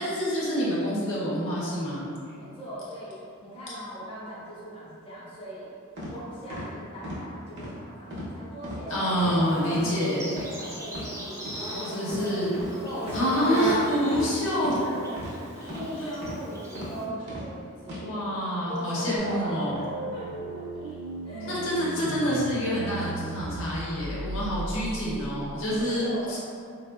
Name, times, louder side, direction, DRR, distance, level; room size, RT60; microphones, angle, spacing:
voice 1, 0.0-2.2 8.9-10.3 11.7-12.5 13.1-14.7 15.6-16.1 18.0-19.8 21.5-26.4, equal, 65° left, -8 dB, 0.7 m, -27 dB
voice 2, 2.3-5.7 6.1-12.4 12.8-13.8 14.0-14.2 14.8-19.9 20.1-20.3 20.7-20.8 21.2-21.6 25.6-26.4, equal, 25° left, -10 dB, 0.6 m, -40 dB
sound 1, 6.0-6.1 6.5-6.7 7.0-7.2 7.6-7.7 8.1-8.3 8.6-8.8 9.2-9.4 9.7-9.9 10.3-10.5 10.9-11.1 11.4-11.6 12.1-12.2 12.5-12.7 13.1-13.2 13.6-13.8 14.1-14.3 14.6-14.8 15.2-15.3 15.7-15.9 16.2-16.4 16.7-16.9 17.3-17.5 17.8-18.0, equal, 50° right, 0.7 m, -37 dB
Insect, 9.4-17.0, equal, 15° right, 0.5 m, -37 dB
sound 2, 19.2-25.8, right 2 dB, 75° right, 0.3 m, -37 dB
3.5 x 2.0 x 2.2 m, 2.4 s
head